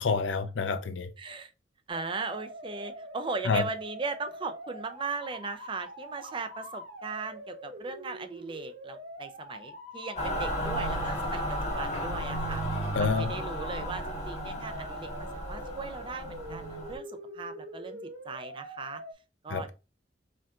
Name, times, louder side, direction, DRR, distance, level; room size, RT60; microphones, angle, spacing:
voice 1, 0.0-1.1 3.4-3.6 12.9-13.3 19.5-19.7, left 4 dB, 80° left, 0.5 m, -28 dB
voice 2, 1.2-1.5 1.9-12.6 13.0-19.0 19.4-19.7, right 4 dB, 30° right, 0.4 m, -38 dB
sound 1, 1.9-19.1, equal, 90° right, 1.9 m, -44 dB
Mechanical fan, 10.2-17.0, equal, 40° left, 1.1 m, -34 dB
4.4 x 2.4 x 3.6 m
head